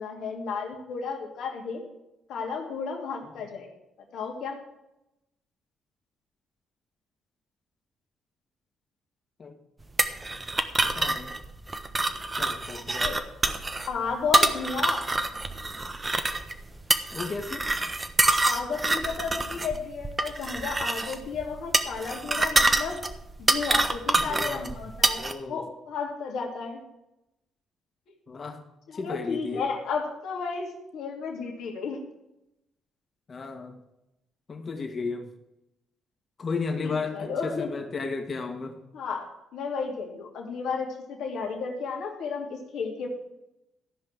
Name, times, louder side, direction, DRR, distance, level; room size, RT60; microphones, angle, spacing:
voice 1, 0.0-1.8 2.3-3.7 4.1-4.6 12.7-13.2 13.9-15.1 18.4-23.0 23.4-26.8 28.9-32.0 36.8-37.7 38.9-43.1, left 5 dB, 70° left, 1 dB, 2.5 m, -33 dB
sound 1, 10.0-25.3, right 2 dB, 25° right, 1.3 m, -26 dB
voice 2, 10.8-11.3 12.3-13.1 17.1-17.7 24.3-24.7 25.1-25.7 28.3-28.6 28.9-29.7 33.3-33.8 34.5-35.3 36.4-38.8, left 4 dB, 45° left, 4 dB, 2.2 m, -34 dB
14.0 x 5.4 x 7.7 m, 0.88 s
hypercardioid pair, 50°, 0 cm